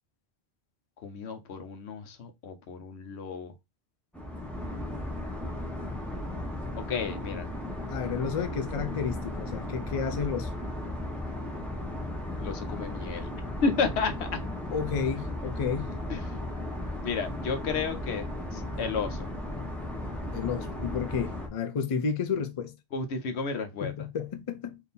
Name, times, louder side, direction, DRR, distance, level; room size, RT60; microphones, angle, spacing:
voice 1, 1.0-3.5 6.9-7.5 12.4-13.3 13.6-14.3 16.1-16.4 17.0-19.3 22.9-23.9, left 5 dB, 85° left, 1.0 m, -32 dB
sound 1, 4.1-21.5, left 1 dB, ahead, 0.8 m, -35 dB
voice 2, 7.9-10.5 14.7-16.0 20.3-22.8 23.8-24.8, left 6 dB, 40° left, 0.5 m, -31 dB
3.5 x 2.8 x 4.0 m
omnidirectional pair, 1.1 m